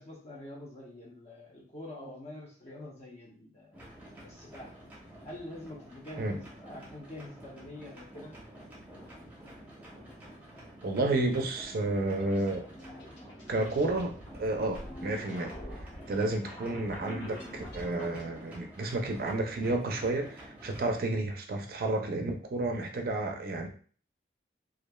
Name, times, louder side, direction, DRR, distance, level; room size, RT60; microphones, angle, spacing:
voice 1, 0.0-3.8 4.2-4.8 5.2-8.3, left 1 dB, 35° left, -1 dB, 0.7 m, -46 dB
sound 1, 3.7-21.0, right 1 dB, 10° right, 0.7 m, -50 dB
sound 2, 10.8-18.2, left 1 dB, 75° left, 1.0 m, -46 dB
voice 2, 10.8-12.6 13.5-14.1 14.4-15.5 16.1-23.7, right 2 dB, 55° right, 3 dB, 0.4 m, -31 dB
3.0 x 2.3 x 2.2 m, 0.43 s
head